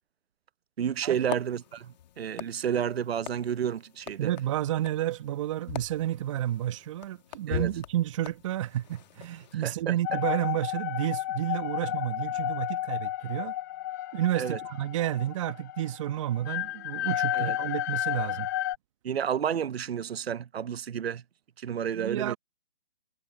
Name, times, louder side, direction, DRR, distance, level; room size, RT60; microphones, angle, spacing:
voice 1, 0.8-4.3 7.5-7.7 9.5-9.9 14.3-14.6 17.3-17.6 19.0-21.2 21.6-22.4, right 8 dB, 65° right, 0.8 m, -31 dB
sound 1, 0.9-9.5, left 10 dB, 40° left, 1.8 m, -42 dB
voice 2, 4.2-13.5 14.1-18.5 21.9-22.4, right 13 dB, 30° right, 1.0 m, -31 dB
sound 2, 10.0-18.8, left 13 dB, 15° left, 0.6 m, -32 dB
hypercardioid pair, 150°, 32 cm